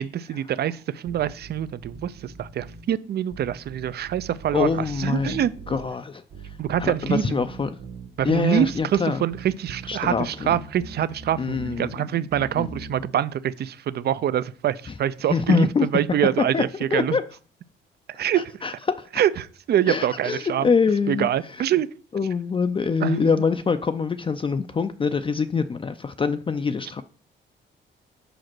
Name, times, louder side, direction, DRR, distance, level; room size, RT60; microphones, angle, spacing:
voice 1, 0.0-5.5 6.6-7.4 8.2-17.2 18.1-18.4 19.1-20.7 21.1-21.9 23.0-23.3, right 10 dB, 55° right, 0.5 m, -25 dB
sound 1, 1.1-2.9 3.3-5.9 6.3-8.9 9.3-11.8 12.3-13.0, right 4 dB, 70° right, 1.7 m, -41 dB
voice 2, 4.5-6.2 6.8-7.7 8.2-9.2 9.9-10.3 11.4-12.1 12.5-12.7 15.3-15.9 16.5-16.6 16.9-17.2 18.6-19.1 19.9-21.3 22.1-27.0, left 5 dB, 25° left, 0.4 m, -24 dB
5.0 x 4.9 x 6.1 m
cardioid pair, 90°, 20 cm